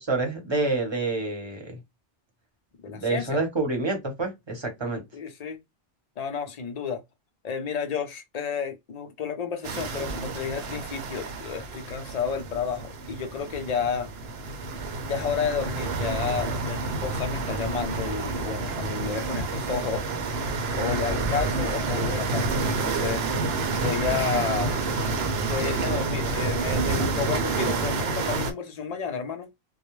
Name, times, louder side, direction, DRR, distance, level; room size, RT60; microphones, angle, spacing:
voice 1, 0.1-1.8 2.9-5.0, right 3 dB, 25° right, 0.8 m, -27 dB
voice 2, 2.8-3.4 5.1-5.6 6.2-7.0 7.4-14.1 15.1-20.1 20.7-23.2 23.8-24.7 25.4-29.5, left 6 dB, 45° left, 0.5 m, -31 dB
sound 1, 9.6-28.5, right 3 dB, 65° right, 0.8 m, -29 dB
2.3 x 2.0 x 3.0 m
omnidirectional pair, 1.2 m